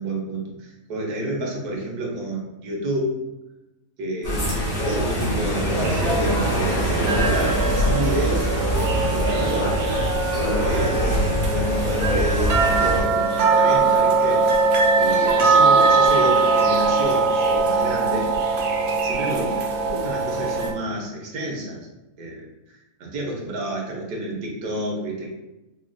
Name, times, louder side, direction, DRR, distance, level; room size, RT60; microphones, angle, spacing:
voice 1, 0.0-3.2 4.0-8.5 9.1-10.0 10.3-14.4 14.9-18.3 19.0-21.9 22.2-25.3, right 1 dB, 90° right, -1 dB, 1.4 m, -30 dB
sound 1, 4.2-13.0, equal, 70° left, 1.9 m, -23 dB
sound 2, 5.8-20.7, right 4 dB, 70° right, 0.6 m, -21 dB
5.2 x 2.3 x 2.5 m, 0.99 s
omnidirectional pair, 1.6 m